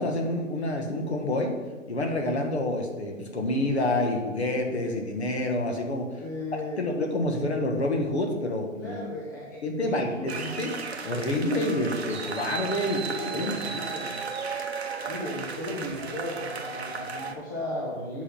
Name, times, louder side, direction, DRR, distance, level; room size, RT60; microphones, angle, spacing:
voice 1, 0.0-1.6 1.9-6.1 6.8-9.0 9.6-10.7 11.0-13.0 13.3-13.5, left 1 dB, 50° left, 2 dB, 1.6 m, -28 dB
voice 2, 6.2-6.9 8.8-10.4 12.8-14.2 15.1-18.2, left 1 dB, 15° left, -5 dB, 0.7 m, -36 dB
sound 1, 10.3-17.3, right 5 dB, 50° right, 0.9 m, -35 dB
8.1 x 5.3 x 5.8 m, 1.2 s
figure-of-eight pair, 155°, 41 cm